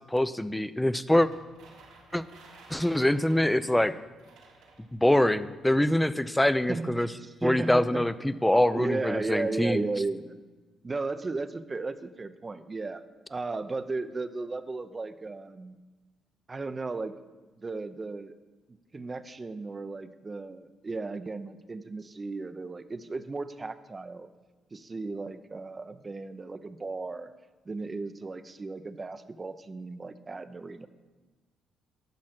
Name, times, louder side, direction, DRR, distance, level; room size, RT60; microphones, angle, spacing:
voice 1, 0.1-1.3 2.1-2.2 2.7-3.9 4.9-7.1 7.4-9.8, left 1 dB, 5° left, 14 dB, 0.5 m, -24 dB
sound 1, 1.1-5.2, right 3 dB, 85° right, 2.2 m, -54 dB
voice 2, 6.7-8.4 8.7-10.4 10.8-13.0 13.3-15.8 16.5-17.2 17.6-18.4 18.7-24.3 24.7-27.3 27.7-30.9, right 3 dB, 30° right, 12 dB, 0.6 m, -35 dB
10.5 x 6.4 x 5.9 m, 1.3 s
supercardioid pair, 65°, 0 cm